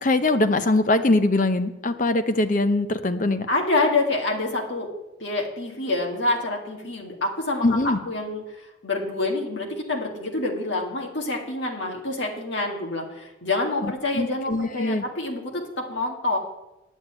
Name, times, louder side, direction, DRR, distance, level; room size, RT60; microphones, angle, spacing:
voice 1, 0.0-3.5 7.6-8.0 13.8-15.0, left 2 dB, 40° left, 9 dB, 0.7 m, -22 dB
voice 2, 3.5-4.9 5.2-16.4, left 2 dB, 70° left, 0 dB, 2.1 m, -27 dB
9.3 x 7.2 x 9.0 m, 1.0 s
head